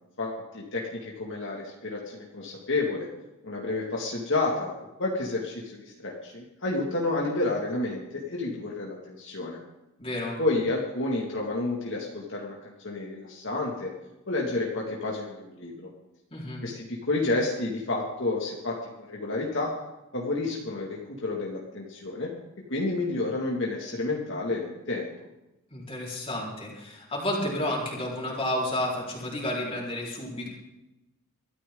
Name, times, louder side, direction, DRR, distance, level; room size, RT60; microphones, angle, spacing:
voice 1, 0.2-3.1 3.4-4.7 5.0-9.6 10.4-13.9 14.3-15.8 16.6-19.7 20.1-22.3 22.7-25.1, left 2 dB, 55° left, -2 dB, 2.3 m, -30 dB
voice 2, 10.0-10.4 16.3-16.6 25.7-30.5, left 1 dB, 25° left, -3 dB, 4.6 m, -31 dB
23.0 x 14.0 x 3.9 m, 0.97 s
head